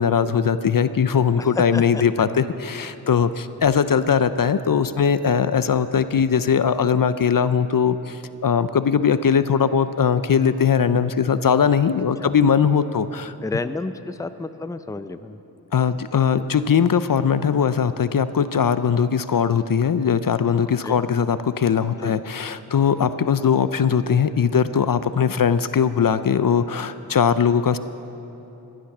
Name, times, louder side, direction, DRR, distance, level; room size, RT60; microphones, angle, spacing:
voice 1, 0.0-13.3 15.7-27.8, left 7 dB, 55° left, 13 dB, 0.6 m, -20 dB
voice 2, 1.4-2.0 12.2-12.4 13.4-15.4 20.8-21.0 22.0-22.1, left 3 dB, 10° left, 11 dB, 0.5 m, -30 dB
16.0 x 11.5 x 6.0 m, 2.9 s
cardioid pair, 45°, 41 cm